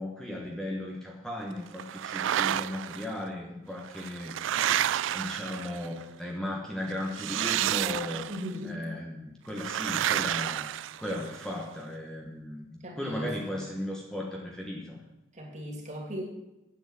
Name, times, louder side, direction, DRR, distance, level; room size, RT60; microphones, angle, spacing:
voice 1, 0.0-4.3 5.1-8.3 8.6-15.0, left 1 dB, 5° left, -1 dB, 1.3 m, -36 dB
sound 1, 1.8-3.0 3.8-6.0 7.1-8.5 9.6-11.5, right 11 dB, 75° right, 0.3 m, -30 dB
voice 2, 8.3-8.8 12.8-13.6 15.3-16.2, equal, 40° right, 1 dB, 2.8 m, -38 dB
9.4 x 8.2 x 7.7 m, 0.95 s
head